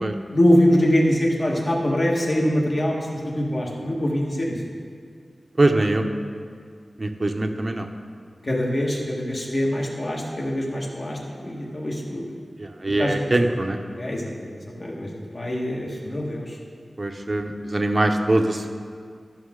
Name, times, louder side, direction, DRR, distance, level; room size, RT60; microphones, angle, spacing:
voice 1, 0.3-4.6 8.4-12.3 13.0-13.2 14.0-16.6, equal, 50° left, -3 dB, 1.7 m, -23 dB
voice 2, 5.6-6.0 7.0-7.9 12.6-13.8 17.0-18.7, right 2 dB, 40° right, 5 dB, 0.7 m, -22 dB
13.0 x 6.0 x 3.7 m, 2.1 s
wide cardioid pair, 90°, 0 cm